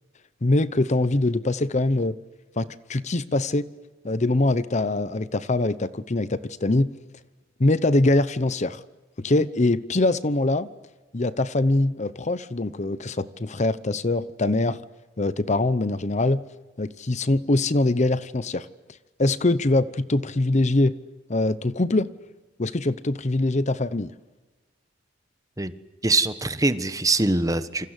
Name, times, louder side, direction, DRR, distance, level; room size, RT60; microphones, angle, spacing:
voice 1, 0.4-2.2 2.6-3.6 4.0-6.9 7.6-8.8 9.2-10.7 11.1-14.8 15.2-16.4 16.8-18.7 19.2-20.9 21.3-22.1 22.6-24.1, left 2 dB, 35° left, 15 dB, 0.8 m, -23 dB
voice 2, 26.0-27.9, right 2 dB, 20° right, 12 dB, 1.2 m, -23 dB
28.0 x 25.5 x 8.2 m, 1.2 s
head